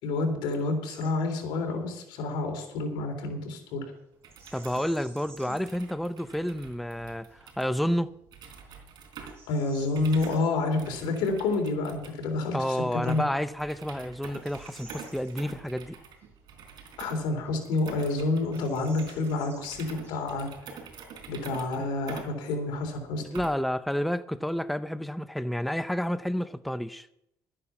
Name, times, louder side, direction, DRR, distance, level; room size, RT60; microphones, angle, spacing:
voice 1, 0.0-3.9 5.5-5.6 9.5-12.8 13.0-13.2 17.0-20.5 21.3-23.2, left 3 dB, 90° left, 3.5 m, -29 dB
Bird vocalization bird call bird song, 0.8-1.1 1.5-1.7 4.3-5.8 6.3-6.4 7.0-7.4 8.0-8.1 8.6-10.5 12.7-12.8 13.4-15.8 16.2-16.3 17.0-17.8 18.0-18.1 18.4-20.5, right 3 dB, 35° right, 6.4 m, -54 dB
sound 1, 4.1-23.8, right 5 dB, 65° right, 3.9 m, -47 dB
voice 2, 4.5-8.1 12.5-16.0 23.3-27.1, equal, ahead, 0.5 m, -30 dB
12.5 x 10.0 x 5.9 m
cardioid pair, 105°, 8 cm